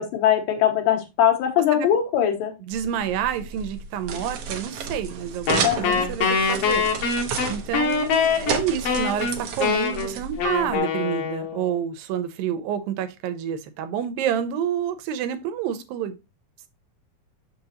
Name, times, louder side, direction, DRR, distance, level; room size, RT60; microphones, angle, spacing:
voice 1, 0.0-2.5 5.6-6.0, left 9 dB, 80° left, 2.8 m, -21 dB
sound 1, 2.7-10.8, right 6 dB, 70° right, 1.5 m, -32 dB
voice 2, 2.7-6.8 7.5-16.2, right 9 dB, 85° right, 2.5 m, -28 dB
Wind instrument woodwind instrument, 5.5-11.8, left 5 dB, 65° left, 1.6 m, -24 dB
6.9 x 6.1 x 2.8 m
omnidirectional pair, 4.0 m